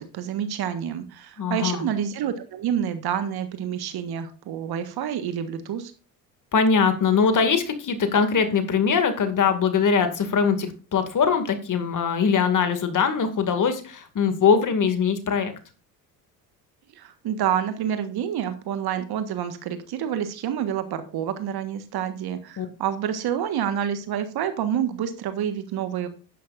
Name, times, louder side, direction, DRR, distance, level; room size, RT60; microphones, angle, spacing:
voice 1, 0.0-5.9 16.9-26.1, right 9 dB, 50° right, 9 dB, 1.6 m, -28 dB
voice 2, 1.4-1.8 6.5-15.5 22.6-22.7, left 6 dB, 40° left, 8 dB, 2.3 m, -22 dB
11.5 x 10.0 x 2.6 m, 0.35 s
hypercardioid pair, 65°, 47 cm